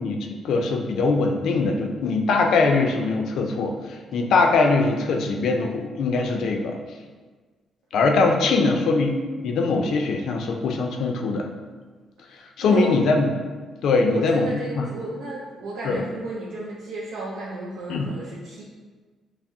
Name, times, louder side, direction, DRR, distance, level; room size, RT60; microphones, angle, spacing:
voice 1, 0.0-6.8 7.9-9.1 9.4-11.5 12.6-13.3 13.8-14.5 14.8-14.9 15.8-16.0 17.9-18.1, left 3 dB, 75° left, 2 dB, 0.4 m, -22 dB
voice 2, 8.4-8.9 12.3-13.0 14.0-18.6, right 2 dB, 90° right, -6 dB, 0.5 m, -33 dB
5.7 x 2.0 x 2.6 m, 1.4 s
cardioid pair, 90°, 0 cm